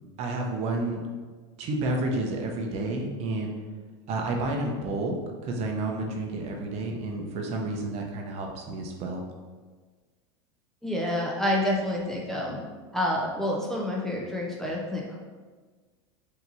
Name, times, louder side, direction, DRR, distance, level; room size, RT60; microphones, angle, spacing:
voice 1, 0.2-1.0 1.6-3.5 4.1-5.1 5.4-9.2, right 2 dB, 45° right, 1 dB, 0.8 m, -30 dB
voice 2, 10.8-12.6 12.9-15.2, left 1 dB, 5° left, -4 dB, 0.5 m, -28 dB
4.5 x 2.9 x 2.7 m, 1.4 s
supercardioid pair, 115°, 15 cm